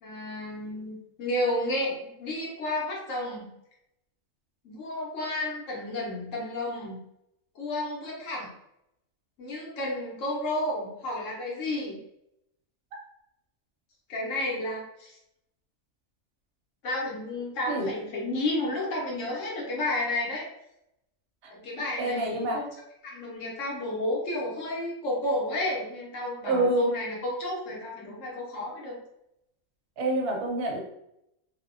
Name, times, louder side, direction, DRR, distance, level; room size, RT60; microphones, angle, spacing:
voice 1, 0.0-3.5 4.6-7.0 7.5-8.5 9.4-12.0 14.1-15.2 16.8-20.5 21.5-22.7 23.0-29.0, left 1 dB, 65° left, -3 dB, 1.0 m, -32 dB
voice 2, 22.0-22.6 26.4-26.9 30.0-30.8, right 2 dB, 55° right, -1 dB, 0.7 m, -26 dB
2.7 x 2.0 x 2.5 m, 0.80 s
omnidirectional pair, 1.5 m